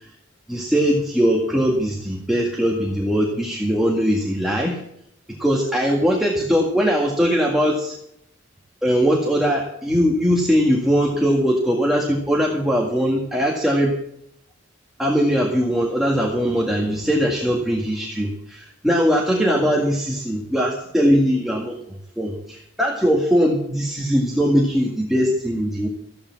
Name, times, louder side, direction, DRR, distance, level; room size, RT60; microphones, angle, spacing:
voice 1, 0.5-4.8 5.4-7.9 8.8-14.0 15.0-21.8 22.2-25.9, equal, ahead, -3 dB, 1.9 m, -20 dB
14.5 x 8.7 x 7.2 m, 0.72 s
head